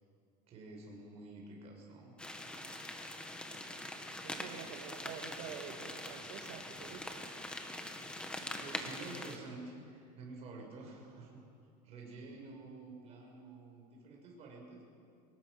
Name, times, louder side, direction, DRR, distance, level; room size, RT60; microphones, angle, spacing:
voice 1, 0.5-2.1 2.9-3.1 8.6-11.4 11.8-14.8, right 2 dB, 35° right, -1 dB, 5.8 m, -49 dB
sound 1, 2.2-9.4, left 1 dB, 5° left, 1.2 m, -43 dB
voice 2, 4.0-7.2, right 8 dB, 60° right, 5 dB, 1.8 m, -48 dB
24.0 x 20.0 x 6.4 m, 2.4 s
cardioid pair, 175°, 19 cm